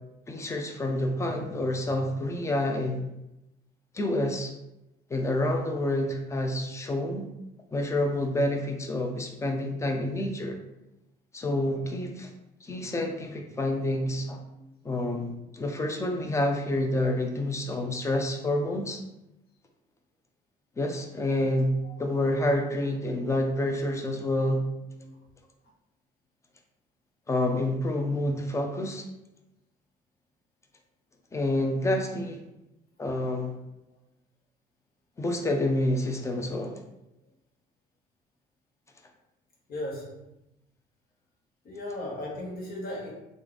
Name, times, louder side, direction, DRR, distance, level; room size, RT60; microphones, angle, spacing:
voice 1, 0.3-3.1 3.9-4.5 5.1-7.3 7.7-10.6 11.3-12.3 12.6-14.4 14.8-19.0 20.8-24.6 27.3-29.0 31.3-32.4 33.0-33.6 35.2-36.8, left 1 dB, 15° left, 3 dB, 0.5 m, -28 dB
voice 2, 21.8-22.2 25.0-25.2 39.7-40.3 41.6-43.1, left 1 dB, 65° left, -2 dB, 1.2 m, -37 dB
3.2 x 2.5 x 3.8 m, 0.90 s
cardioid pair, 110°, 17 cm